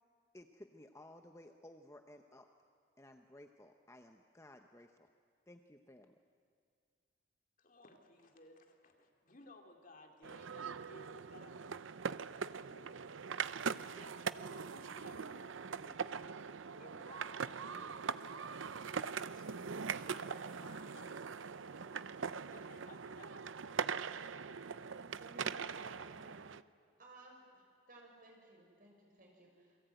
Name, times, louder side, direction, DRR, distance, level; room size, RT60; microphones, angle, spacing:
voice 1, 0.3-2.5 3.0-5.1 5.5-6.2, left 1 dB, 15° left, 5 dB, 0.9 m, -57 dB
voice 2, 7.6-11.8 12.6-13.2 13.8-16.2 16.8-18.3 18.9-23.5, left 2 dB, 45° left, 3 dB, 2.5 m, -59 dB
sound 1, 10.2-26.6, right 6 dB, 80° right, 0.7 m, -42 dB
voice 3, 25.2-26.7 27.0-29.8, right 1 dB, 45° right, 0 dB, 6.6 m, -59 dB
28.5 x 22.5 x 9.2 m, 2.1 s
head